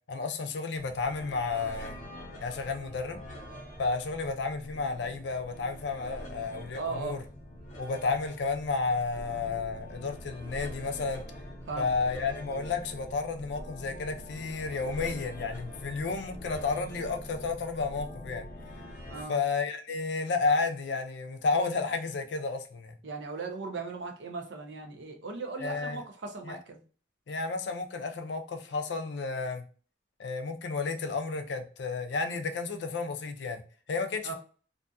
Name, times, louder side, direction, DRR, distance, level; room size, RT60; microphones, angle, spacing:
voice 1, 0.1-2.0 2.4-3.2 3.8-7.2 7.8-11.2 11.8-18.5 19.3-23.0 25.6-26.0 26.4-26.6 27.3-29.6 30.2-33.6 33.9-34.3, left 4 dB, 75° left, 0.4 m, -32 dB
sound 1, 0.8-19.2, equal, 45° left, 0.8 m, -44 dB
voice 2, 6.8-7.2 11.7-12.0 19.1-19.4 23.0-26.8 34.2-34.3, right 4 dB, 85° right, 0.6 m, -37 dB
2.6 x 2.3 x 2.6 m
head